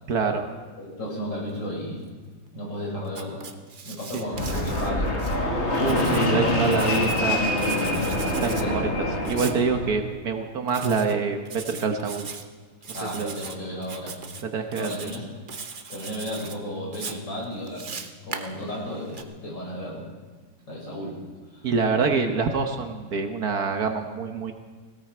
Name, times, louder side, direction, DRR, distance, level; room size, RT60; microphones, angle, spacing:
voice 1, 0.1-0.5 4.1-4.2 5.8-7.4 8.3-8.9 9.3-12.3 12.9-13.3 14.5-15.1 21.6-24.5, right 5 dB, 55° right, 5 dB, 1.5 m, -26 dB
voice 2, 0.8-2.1 2.5-3.5 3.8-5.3 8.3-8.8 12.9-14.2 14.8-15.3 15.9-20.1 20.7-21.2 21.5-21.7, equal, 70° left, -3 dB, 5.9 m, -34 dB
Writing, 3.1-5.4 5.7-7.2 7.6-8.6 9.2-9.6 10.7-11.1 11.4-12.4 12.8-13.5 13.8-14.4 14.7-15.2 15.5-16.5 16.9-19.2, right 5 dB, 40° right, 0.7 m, -39 dB
Fixed-wing aircraft airplane, 4.3-10.0, left 1 dB, 35° left, 2.2 m, -25 dB
18.5 x 17.0 x 4.5 m, 1.4 s
omnidirectional pair, 2.0 m